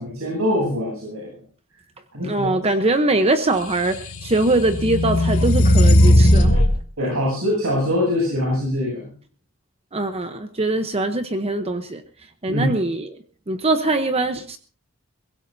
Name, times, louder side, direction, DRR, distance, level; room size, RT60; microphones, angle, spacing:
voice 1, 0.0-1.4 2.1-2.5 7.0-9.1 12.5-12.7, left 1 dB, 80° right, -3 dB, 7.9 m, -23 dB
voice 2, 2.2-6.6 9.9-12.0 12.4-13.1 13.5-14.6, right 2 dB, 30° right, 8 dB, 1.0 m, -22 dB
sound 1, 3.8-6.7, left 1 dB, 85° left, 2.9 m, -16 dB
23.0 x 16.5 x 2.8 m, 0.40 s
head